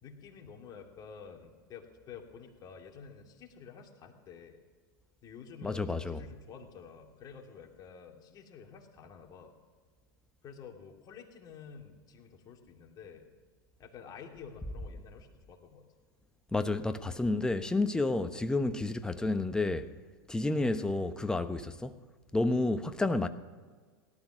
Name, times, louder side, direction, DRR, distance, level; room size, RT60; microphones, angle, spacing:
voice 1, 0.0-4.6 5.2-9.5 10.4-13.2 13.8-15.9, left 6 dB, 35° left, 2.5 m, -50 dB
voice 2, 5.6-6.2 16.5-19.9 20.3-22.0 22.3-23.3, left 2 dB, 5° left, 0.8 m, -30 dB
18.0 x 12.0 x 6.2 m
hypercardioid pair, 105°, 11 cm